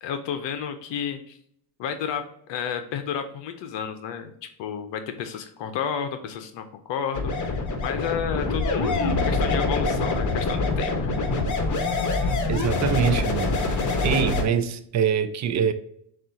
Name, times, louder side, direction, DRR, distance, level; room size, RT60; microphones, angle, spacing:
voice 1, 0.0-1.4 1.8-11.1, left 7 dB, 60° left, 0.7 m, -32 dB
sound 1, 7.1-14.4, left 3 dB, 35° left, 1.0 m, -25 dB
voice 2, 12.5-15.7, right 7 dB, 35° right, 0.5 m, -24 dB
5.9 x 2.5 x 2.7 m
supercardioid pair, 75°, 49 cm